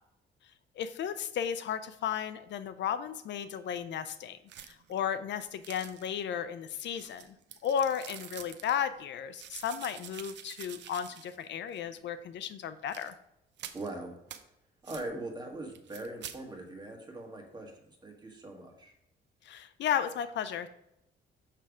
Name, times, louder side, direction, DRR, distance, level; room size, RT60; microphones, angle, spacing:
voice 1, 0.8-4.4 4.7-7.4 7.6-13.1 19.4-20.7, left 8 dB, 65° left, 12 dB, 0.4 m, -34 dB
sound 1, 4.5-5.0 5.6-6.2 6.8-8.7 9.3-11.4 11.7-11.8 12.8-13.1 13.6-13.9 14.3-14.4 14.9-15.1 15.7-16.4, right 9 dB, 65° right, 0.6 m, -47 dB
voice 2, 13.7-14.1 14.8-18.9, right 2 dB, 20° right, 2 dB, 1.5 m, -41 dB
6.6 x 3.3 x 4.9 m, 0.83 s
cardioid pair, 90°, 20 cm